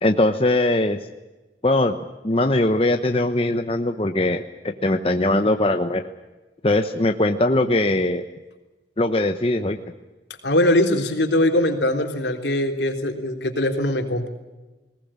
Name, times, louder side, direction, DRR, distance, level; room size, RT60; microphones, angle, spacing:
voice 1, 0.0-1.0 1.6-2.0 2.2-6.1 6.6-8.2 9.0-9.8, left 1 dB, 30° left, 6 dB, 0.9 m, -21 dB
voice 2, 10.4-14.3, left 1 dB, 75° left, 4 dB, 3.4 m, -21 dB
21.0 x 19.0 x 8.8 m, 1.1 s
head